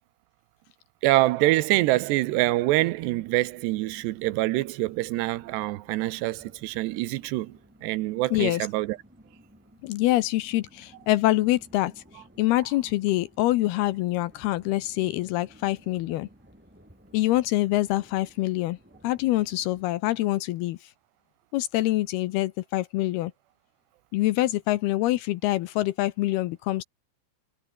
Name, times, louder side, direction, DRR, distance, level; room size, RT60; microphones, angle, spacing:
voice 1, 1.0-9.0, right 18 dB, 80° right, 2.8 m, -25 dB
sound 1, 2.3-19.9, equal, ahead, 6.2 m, -56 dB
voice 2, 8.3-8.7 9.8-16.3 17.1-18.8 19.0-20.9 21.5-23.3 24.1-26.8, left 17 dB, 80° left, 2.5 m, -25 dB
omnidirectional pair, 5.1 m